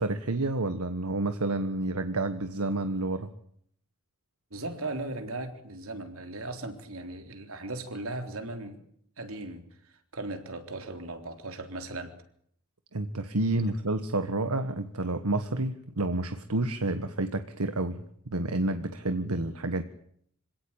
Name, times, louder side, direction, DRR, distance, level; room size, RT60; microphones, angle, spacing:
voice 1, 0.0-3.3 12.9-19.8, right 2 dB, 85° right, 9 dB, 1.5 m, -29 dB
voice 2, 4.5-8.8 9.2-12.1, right 2 dB, 70° right, 6 dB, 3.7 m, -38 dB
26.5 x 17.5 x 8.9 m, 0.68 s
head